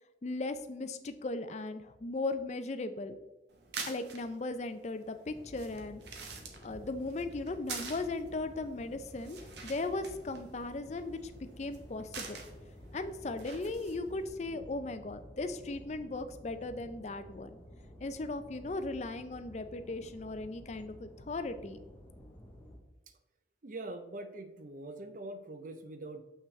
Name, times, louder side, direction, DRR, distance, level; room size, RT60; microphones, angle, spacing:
voice 1, 0.2-3.2 3.9-6.0 6.6-11.3 11.6-12.4 12.9-17.6 18.0-21.8, left 2 dB, 35° left, 10 dB, 0.4 m, -37 dB
sound 1, 3.5-14.3, right 5 dB, 70° right, 1.0 m, -48 dB
sound 2, 5.3-22.8, equal, 10° left, 0.8 m, -52 dB
voice 2, 23.6-26.2, right 2 dB, 45° right, 8 dB, 0.6 m, -43 dB
6.8 x 5.8 x 3.2 m, 1.1 s
head